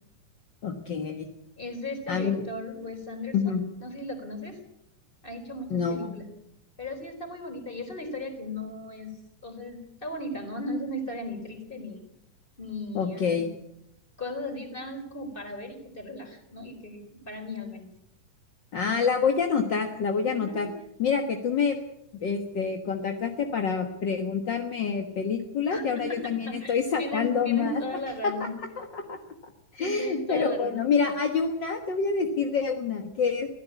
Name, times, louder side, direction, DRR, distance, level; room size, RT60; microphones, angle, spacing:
voice 1, 0.6-1.3 2.1-2.4 3.3-3.6 5.7-6.1 12.9-13.5 18.7-20.7 21.0-21.8 22.1-27.8 28.2-28.3 28.8-29.2 29.7-33.5, left 5 dB, 45° left, 4 dB, 1.5 m, -27 dB
voice 2, 1.6-4.6 5.2-6.3 6.8-9.1 9.4-12.0 12.6-13.5 14.2-17.8 20.3-20.7 25.7-26.2 26.5-28.5 29.8-30.8, left 1 dB, 15° left, 5 dB, 4.2 m, -36 dB
24.0 x 16.0 x 8.3 m, 0.82 s
omnidirectional pair, 3.9 m